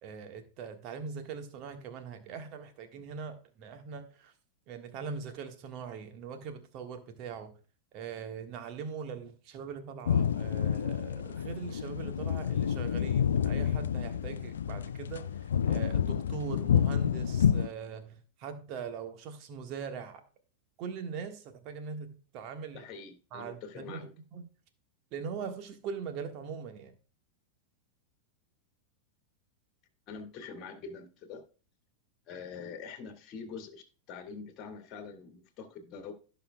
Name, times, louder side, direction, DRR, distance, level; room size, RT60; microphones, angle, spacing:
voice 1, 0.0-4.3 4.7-7.5 7.9-15.3 15.7-20.2 20.8-22.8 23.3-24.1 24.3-24.5 25.1-26.9, right 6 dB, 40° right, 1.6 m, -41 dB
sound 1, 10.1-17.7, left 8 dB, 65° left, 0.4 m, -29 dB
voice 2, 22.7-24.1 30.1-31.4 32.3-36.1, left 5 dB, 35° left, 2.1 m, -44 dB
16.5 x 5.7 x 2.3 m
figure-of-eight pair, 90°, 0 cm